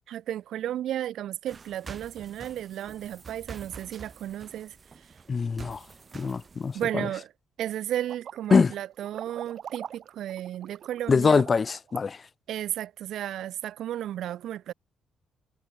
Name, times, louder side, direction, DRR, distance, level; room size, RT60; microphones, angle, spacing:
voice 1, 0.1-4.8 6.7-7.3 7.6-11.4 12.5-14.7, right 12 dB, 75° right, 1.6 m, -33 dB
sound 1, 1.5-6.8, right 5 dB, 35° right, 5.7 m, -47 dB
voice 2, 5.3-5.8 6.1-7.1 8.5-8.7 11.1-12.2, left 5 dB, 35° left, 1.0 m, -23 dB
sound 2, 8.0-11.9, right 9 dB, 60° right, 7.5 m, -42 dB
cardioid pair, 90°, 0 cm